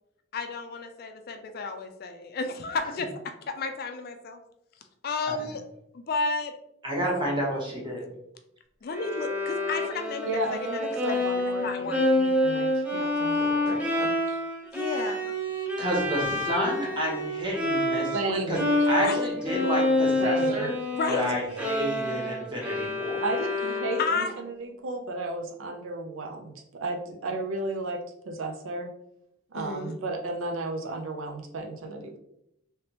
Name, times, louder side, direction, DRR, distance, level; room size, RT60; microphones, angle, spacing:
voice 1, 0.3-4.4 5.0-5.6 5.9-6.5 8.8-10.8 11.1-12.0 14.7-15.3 19.0-19.3 20.9-21.4 24.0-24.3 29.5-29.9, left 3 dB, 50° left, 7 dB, 0.4 m, -32 dB
voice 2, 6.8-8.0 15.8-18.6 18.9-20.7 21.1-23.2, equal, 25° right, -3 dB, 1.1 m, -30 dB
Bowed string instrument, 8.9-18.3 18.5-24.4, left 1 dB, 5° right, 0.6 m, -28 dB
voice 3, 10.2-14.4 18.1-18.6 20.2-20.7 23.2-28.0 28.3-28.9 29.5-32.2, right 2 dB, 80° right, 3 dB, 0.6 m, -33 dB
3.3 x 3.0 x 2.9 m, 0.79 s
head